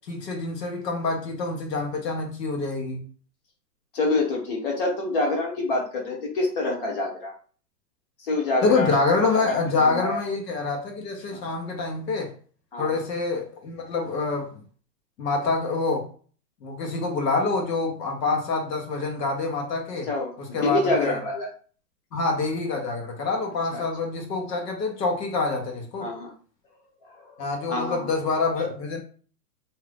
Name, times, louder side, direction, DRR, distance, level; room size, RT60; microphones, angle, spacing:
voice 1, 0.1-3.0 8.6-12.3 12.8-14.6 15.2-16.1 16.6-20.1 20.4-21.2 22.1-26.1 27.4-29.0, left 3 dB, 75° left, 1.1 m, -26 dB
voice 2, 3.9-7.3 8.2-9.0 9.5-10.2 11.3-11.4 12.7-12.9 20.1-21.5 23.7-23.8 26.0-26.3 27.1-27.3 27.7-28.1, left 2 dB, 35° left, 0.9 m, -26 dB
2.7 x 2.4 x 3.3 m
hypercardioid pair, 170°, 48 cm